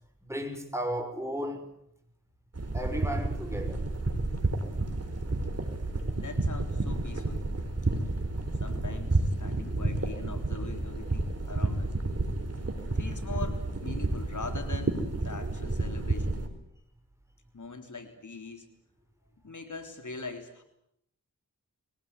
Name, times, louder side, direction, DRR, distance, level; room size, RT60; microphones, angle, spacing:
voice 1, 0.2-1.7 2.7-3.8, equal, 10° right, 5 dB, 5.8 m, -34 dB
sound 1, 2.5-16.5, right 2 dB, 45° right, 4.1 m, -31 dB
voice 2, 6.1-7.4 7.9-8.3 8.6-12.0 12.9-16.4 17.5-18.7 19.4-20.6, left 4 dB, 60° left, 6 dB, 3.5 m, -42 dB
22.0 x 18.5 x 9.5 m, 0.75 s
cardioid pair, 50°, 34 cm